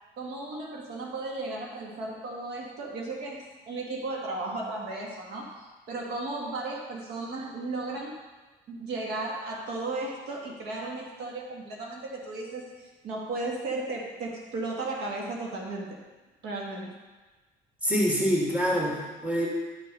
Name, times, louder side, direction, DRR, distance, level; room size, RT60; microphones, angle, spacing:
voice 1, 0.2-8.1 8.7-16.0 16.4-16.9, right 2 dB, 75° right, -1 dB, 1.8 m, -35 dB
voice 2, 17.8-19.5, equal, 10° right, -5 dB, 2.3 m, -25 dB
11.5 x 5.2 x 5.2 m, 1.2 s
cardioid pair, 110°, 17 cm